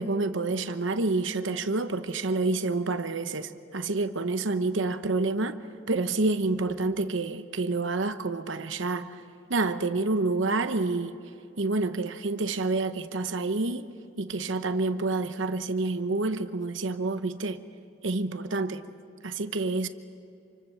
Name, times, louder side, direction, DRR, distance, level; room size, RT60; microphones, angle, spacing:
voice 1, 0.0-5.6 5.9-9.2 9.5-11.2 11.6-13.9 14.2-17.6 18.0-18.8 19.2-19.9, right 3 dB, 70° right, 1.0 m, -28 dB
28.0 x 25.5 x 7.0 m
head